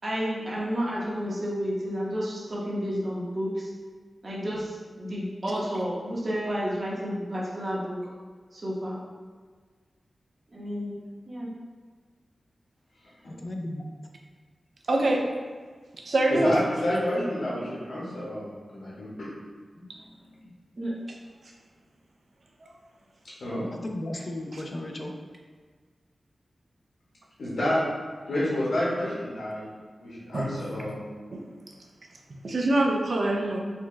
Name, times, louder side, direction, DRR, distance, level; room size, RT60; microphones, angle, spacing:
voice 1, 0.0-3.7 4.2-8.0 8.5-9.0 10.5-11.0 11.3-11.5 17.1-17.2 17.6-18.2 19.7-19.9 20.4-20.5 20.8-20.9, equal, 45° right, -5 dB, 0.9 m, -31 dB
voice 2, 13.2-13.9 23.7-25.1, left 1 dB, 40° left, 2 dB, 0.4 m, -35 dB
voice 3, 14.9-15.3 16.0-16.5 30.3-30.6 30.8-30.9 31.3-31.4 32.3-33.6, right 1 dB, 60° right, 0 dB, 0.5 m, -24 dB
voice 4, 16.3-19.3 23.4-23.7 27.4-27.8 28.3-29.7 30.0-31.0, left 1 dB, 85° left, -7 dB, 1.1 m, -29 dB
4.2 x 2.3 x 3.1 m, 1.5 s
wide cardioid pair, 105°, 0 cm